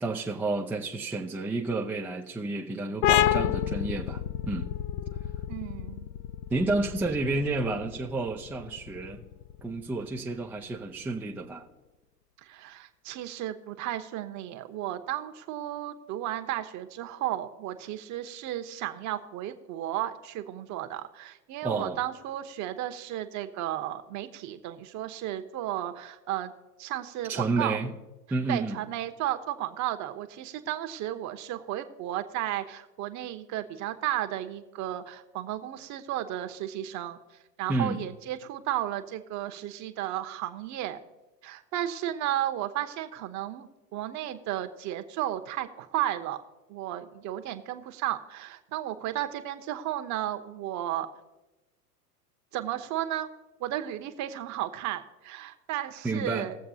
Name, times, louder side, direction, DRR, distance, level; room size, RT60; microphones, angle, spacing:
voice 1, 0.0-4.7 6.5-9.2 9.6-11.7 21.6-22.0 27.3-27.9 28.3-28.8 37.7-38.0 56.0-56.5, right 3 dB, 5° right, -1 dB, 0.4 m, -30 dB
sound 1, 3.0-10.3, left 11 dB, 45° left, 0.6 m, -30 dB
voice 2, 5.5-6.1 12.4-26.5 26.8-27.8 28.5-37.2 37.6-41.0 41.4-46.4 46.7-51.1 52.5-53.3 53.6-56.6, right 13 dB, 35° right, 9 dB, 1.0 m, -33 dB
20.0 x 7.4 x 2.8 m, 1.1 s
hypercardioid pair, 95°, 49 cm